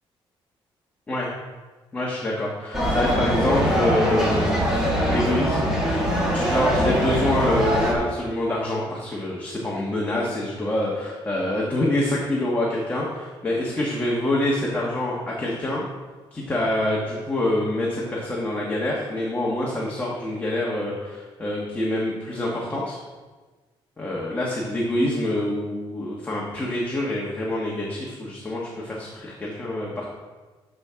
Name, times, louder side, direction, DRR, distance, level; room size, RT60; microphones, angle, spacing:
voice 1, 1.9-5.8 6.3-15.8 16.3-23.0 24.0-30.1, left 1 dB, 15° left, -4 dB, 1.4 m, -26 dB
sound 1, 2.7-7.9, equal, 5° right, 2.1 m, -22 dB
12.5 x 6.0 x 3.7 m, 1.3 s
cardioid pair, 155°, 10 cm